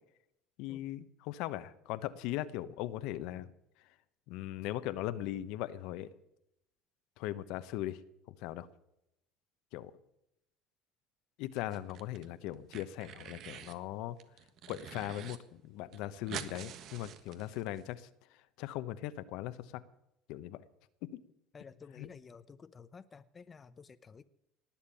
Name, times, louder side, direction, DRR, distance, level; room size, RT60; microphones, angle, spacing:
voice 1, 0.6-3.5 4.3-6.1 7.2-8.0 8.4-8.7 9.7-9.9 11.4-14.2 14.7-18.1 18.6-19.8 20.3-20.6 21.1-21.2 22.0-22.1, left 14 dB, 75° left, 13 dB, 1.0 m, -39 dB
sound 1, 11.6-12.3 12.5-13.8 14.2-15.4 15.6-15.7 15.9-17.8, right 9 dB, 55° right, 1.4 m, -46 dB
voice 2, 21.5-24.2, left 5 dB, 25° left, 13 dB, 0.7 m, -53 dB
19.0 x 7.4 x 8.5 m, 0.81 s
supercardioid pair, 110°, 0 cm